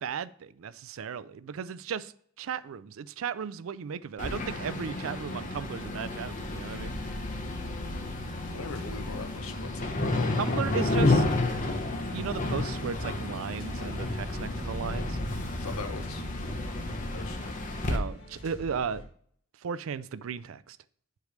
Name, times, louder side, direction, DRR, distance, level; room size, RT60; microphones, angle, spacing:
voice 1, 0.0-2.1 2.4-6.9 10.4-11.2 11.9-15.2 17.8-19.0 19.6-20.8, right 6 dB, 75° right, 17 dB, 0.4 m, -35 dB
sound 1, 4.2-18.0, left 2 dB, 40° left, 0.9 m, -31 dB
voice 2, 8.5-11.4 15.5-16.2 17.1-17.6, left 4 dB, 90° left, 8 dB, 0.9 m, -40 dB
sound 2, 8.7-19.0, equal, 60° left, 1.9 m, -46 dB
8.3 x 3.2 x 6.4 m, 0.62 s
head